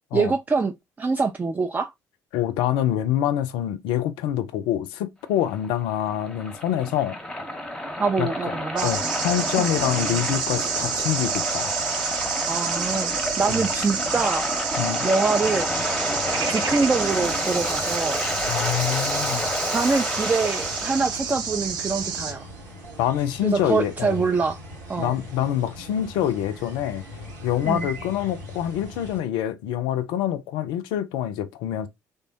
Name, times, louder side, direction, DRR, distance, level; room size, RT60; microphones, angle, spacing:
voice 1, 0.1-0.7 1.0-1.9 8.0-8.9 12.5-13.1 13.4-14.5 15.0-15.7 16.5-18.2 19.7-22.5 23.4-24.6 24.9-25.1 27.6-27.9, right 4 dB, 20° right, 0.3 m, -24 dB
voice 2, 2.3-7.2 8.2-8.5 8.8-11.7 13.5-13.6 14.8-15.1 18.5-19.6 23.0-24.2 25.0-27.0 27.4-31.9, left 11 dB, 60° left, 0.4 m, -26 dB
Waves surf, 5.4-21.1, left 1 dB, 10° left, 0.8 m, -29 dB
sound 1, 8.8-22.3, right 6 dB, 55° right, 0.7 m, -29 dB
sound 2, 15.4-29.2, equal, 80° right, 0.9 m, -41 dB
3.3 x 2.1 x 2.6 m
figure-of-eight pair, 50°, 9 cm